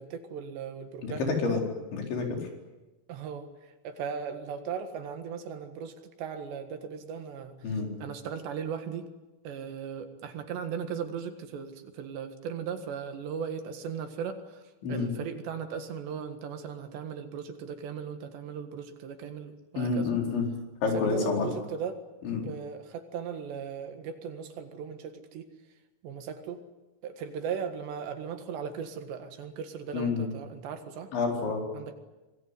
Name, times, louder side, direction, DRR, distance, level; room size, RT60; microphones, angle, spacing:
voice 1, 0.0-1.6 3.1-3.5 3.8-9.1 9.5-14.6 14.9-20.1 20.9-22.0 22.3-25.4 26.0-26.6 27.0-31.1 31.7-31.9, right 7 dB, 70° right, 7 dB, 3.7 m, -37 dB
voice 2, 1.0-1.6 1.9-2.4 7.6-7.9 14.8-15.1 19.8-20.5 20.8-21.5 22.2-22.5 29.9-30.3 31.1-31.6, left 4 dB, 70° left, 1 dB, 6.7 m, -28 dB
25.5 x 19.5 x 9.9 m, 1.1 s
omnidirectional pair, 5.5 m